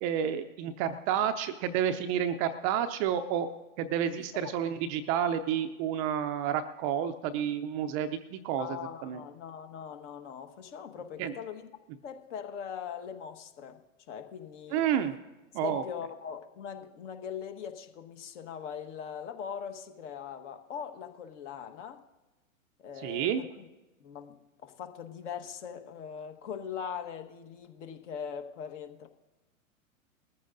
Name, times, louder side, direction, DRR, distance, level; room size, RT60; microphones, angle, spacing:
voice 1, 0.0-3.5 3.8-8.8 9.0-9.2 11.2-11.3 14.7-15.1 15.5-15.8 23.0-23.4, right 9 dB, 25° right, 9 dB, 0.4 m, -30 dB
voice 2, 8.6-11.7 12.0-13.8 14.1-14.8 15.6-22.0 22.8-23.7 24.0-29.1, left 7 dB, 55° left, 6 dB, 1.4 m, -41 dB
20.0 x 14.0 x 2.6 m, 1.1 s
hypercardioid pair, 115°, 41 cm